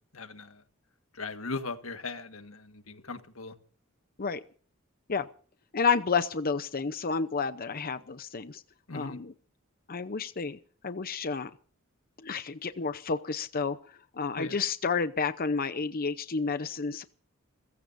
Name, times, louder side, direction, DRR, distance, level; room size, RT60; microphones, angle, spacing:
voice 1, 0.1-0.6 1.1-3.6 8.9-9.2 14.4-14.6, left 3 dB, 85° left, 9 dB, 1.7 m, -38 dB
voice 2, 5.7-8.6 8.9-9.3 9.9-11.5 12.2-17.0, left 5 dB, 45° left, 11 dB, 0.8 m, -30 dB
30.0 x 15.5 x 2.7 m, 0.44 s
head